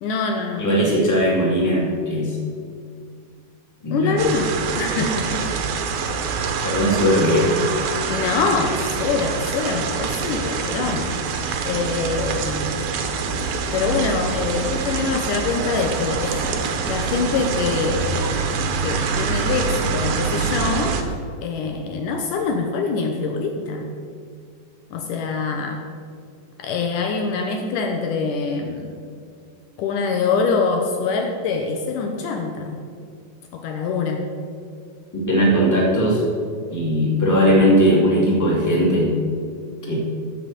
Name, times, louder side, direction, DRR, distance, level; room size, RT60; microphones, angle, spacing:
voice 1, 0.0-1.0 3.9-5.6 8.1-11.1 11.7-12.9 13.7-18.5 18.8-21.0 21.4-23.9 24.9-25.8 26.6-29.0 29.8-32.8 33.5-34.3, left 4 dB, 75° left, 3 dB, 2.3 m, -24 dB
voice 2, 0.6-2.4 3.8-4.2 6.1-6.2 6.6-7.7 35.3-36.2 36.7-39.1 39.9-40.0, equal, 5° left, -4 dB, 2.3 m, -18 dB
sound 1, 4.2-21.0, right 5 dB, 70° right, 2.1 m, -25 dB
15.0 x 5.2 x 7.9 m, 2.2 s
omnidirectional pair, 4.0 m